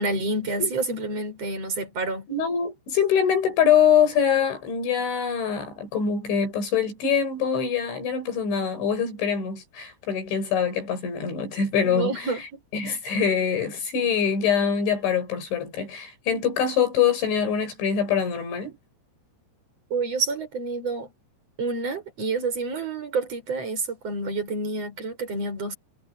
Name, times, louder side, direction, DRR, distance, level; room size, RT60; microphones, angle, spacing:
voice 1, 0.0-2.3 11.8-12.6 19.9-21.1 21.6-25.7, right 3 dB, 30° right, 8.1 m, -28 dB
voice 2, 2.3-12.3 12.7-18.8, left 7 dB, 70° left, 9.0 m, -24 dB
omnidirectional pair, 5.5 m